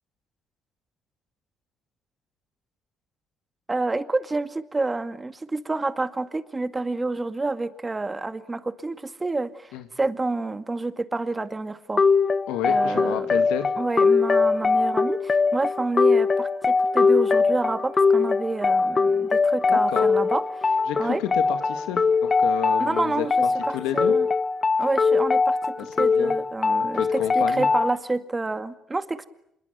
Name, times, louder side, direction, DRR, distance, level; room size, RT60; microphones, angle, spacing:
voice 1, 3.7-12.0 12.7-13.3 13.8-21.2 22.8-23.3 23.7-24.3 24.8-29.3, right 3 dB, 25° right, 10 dB, 2.1 m, -29 dB
sound 1, 12.0-28.0, left 4 dB, 35° left, 1.2 m, -22 dB
voice 2, 12.5-13.7 19.7-20.1 20.9-24.1 26.0-26.3 26.9-27.7, left 12 dB, 85° left, 8 dB, 2.2 m, -31 dB
26.5 x 22.0 x 9.3 m, 0.78 s
supercardioid pair, 65°, 0 cm